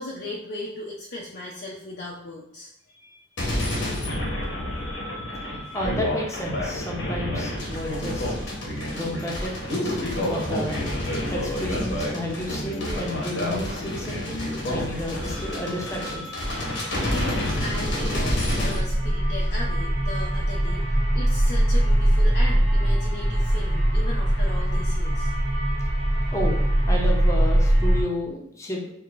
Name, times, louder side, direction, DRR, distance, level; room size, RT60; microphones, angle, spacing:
voice 1, 0.0-3.3 4.9-5.1 17.1-25.3, left 1 dB, 60° left, -4 dB, 0.6 m, -37 dB
sound 1, 3.4-18.8, left 1 dB, 80° left, 1.1 m, -29 dB
voice 2, 5.5-8.3 8.9-10.9 11.3-16.3 26.3-26.6 26.9-28.9, left 1 dB, 15° left, -1 dB, 0.7 m, -32 dB
sound 2, 17.5-28.0, right 1 dB, 65° right, 1.1 m, -22 dB
4.6 x 2.7 x 2.5 m, 0.73 s
head